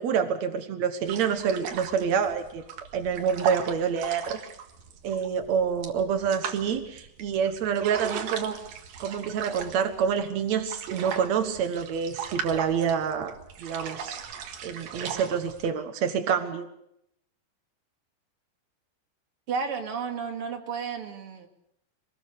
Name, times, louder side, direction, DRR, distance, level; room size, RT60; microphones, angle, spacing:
voice 1, 0.0-2.6 2.9-4.4 5.0-8.6 9.0-13.3 13.6-14.2 14.6-16.7, right 7 dB, 85° right, 7 dB, 1.5 m, -27 dB
sound 1, 1.1-15.7, right 7 dB, 60° right, 3.1 m, -38 dB
voice 2, 19.5-21.5, right 5 dB, 40° right, 3 dB, 2.6 m, -32 dB
25.0 x 20.5 x 6.8 m, 0.76 s
omnidirectional pair, 5.3 m